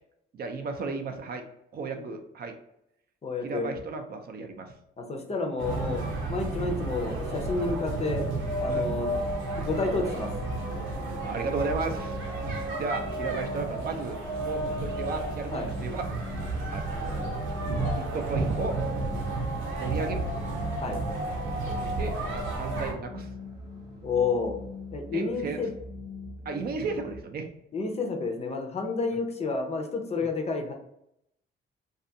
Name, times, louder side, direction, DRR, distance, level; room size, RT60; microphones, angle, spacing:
voice 1, 0.3-1.4 1.7-2.5 3.4-4.7 8.7-8.9 9.5-9.6 10.8-12.2 12.7-16.0 16.7-17.1 18.0-18.8 19.8-20.2 21.7-23.3 25.1-25.6 26.5-27.5, right 4 dB, 50° right, 6 dB, 0.4 m, -34 dB
voice 2, 3.2-3.7 5.0-6.0 6.3-8.3 8.6-9.1 9.6-10.3 15.5-15.7 20.8-21.0 24.0-24.6 24.9-25.7 27.7-30.7, left 3 dB, 30° left, 4 dB, 0.5 m, -30 dB
sound 1, 5.6-22.9, right 2 dB, 85° right, 0.7 m, -32 dB
sound 2, 8.7-27.2, left 2 dB, 20° right, 1.0 m, -43 dB
2.5 x 2.4 x 2.6 m, 0.79 s
cardioid pair, 90°, 20 cm